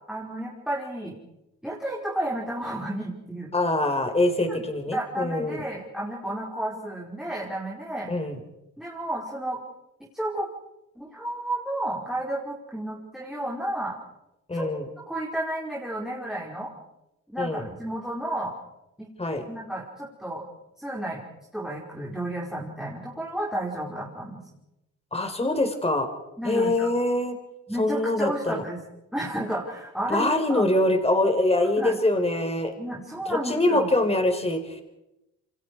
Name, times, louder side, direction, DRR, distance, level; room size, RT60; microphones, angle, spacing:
voice 1, 0.1-1.2 1.6-3.5 4.5-8.1 8.8-9.6 10.1-10.5 10.9-14.0 14.5-14.7 15.1-16.7 17.3-18.6 19.0-19.1 19.5-20.5 20.8-21.2 21.5-24.4 26.4-26.9 27.7-28.8 29.1-30.6 31.8-32.0 32.8-33.9, right 1 dB, ahead, -3 dB, 5.1 m, -32 dB
voice 2, 3.5-5.6 8.1-8.4 14.5-14.8 17.4-17.7 19.2-19.4 25.1-26.1 26.4-27.4 27.8-28.6 30.1-32.7 33.3-34.8, left 2 dB, 20° left, 6 dB, 4.6 m, -24 dB
28.5 x 26.0 x 4.8 m, 0.92 s
cardioid pair, 90°, 30 cm